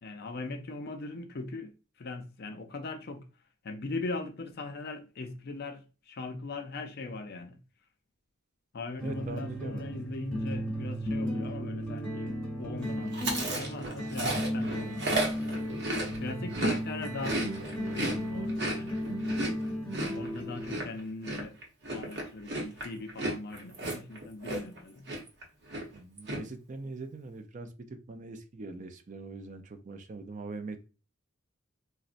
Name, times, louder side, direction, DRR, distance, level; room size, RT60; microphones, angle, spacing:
voice 1, 0.0-1.7 2.0-3.3 3.6-7.6 8.7-15.7 16.2-17.6 17.8-19.0 20.1-21.6 21.9-25.1, left 3 dB, 50° left, 0.4 m, -40 dB
sound 1, 9.0-20.8, equal, 5° left, 1.0 m, -35 dB
voice 2, 9.0-9.9 25.9-30.8, right 3 dB, 35° right, 0.4 m, -42 dB
Chewing mastication, 13.1-16.8 17.1-24.8 25.1-25.4 25.7-26.4, right 1 dB, 55° right, 0.8 m, -33 dB
3.9 x 2.1 x 2.4 m
head